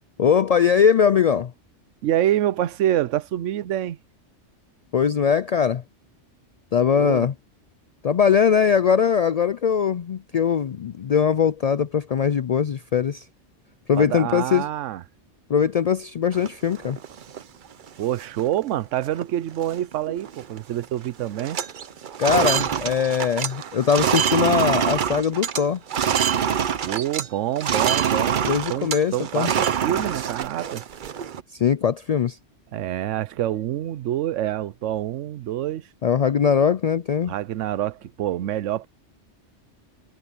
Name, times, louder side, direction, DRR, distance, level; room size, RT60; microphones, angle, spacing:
voice 1, 0.2-1.5 4.9-5.8 6.7-7.3 8.0-13.2 13.9-14.7 15.5-17.0 22.2-25.8 28.4-29.5 31.5-32.4 36.0-37.3, left 7 dB, 90° left, 0.3 m, -21 dB
voice 2, 2.0-4.0 7.0-7.3 14.0-15.0 18.0-21.6 26.8-30.8 32.7-35.9 37.3-38.9, right 12 dB, 90° right, 1.0 m, -26 dB
sound 1, 16.3-17.4 17.9-18.0 18.2-18.6 19.0-19.2 19.5-20.6 20.8-21.1 21.3-27.3 27.6-31.4, right 8 dB, 50° right, 0.7 m, -25 dB
omnidirectional pair, 1.2 m